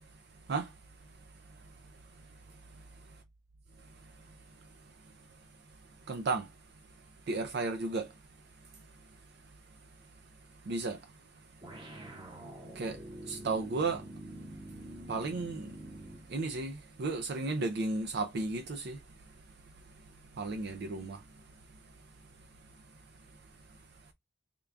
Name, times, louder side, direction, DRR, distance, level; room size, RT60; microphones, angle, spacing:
voice 1, 1.5-3.0 3.9-5.1 6.1-6.5 7.3-8.2 8.7-9.1 10.6-11.1 11.8-12.3 12.6-14.6 14.9-19.4 19.8-21.4 21.8-21.9 22.7-23.8, right 3 dB, 55° right, 0.4 m, -37 dB
sound 1, 11.6-16.3, right 1 dB, 25° right, 0.7 m, -46 dB
3.7 x 2.2 x 3.4 m
head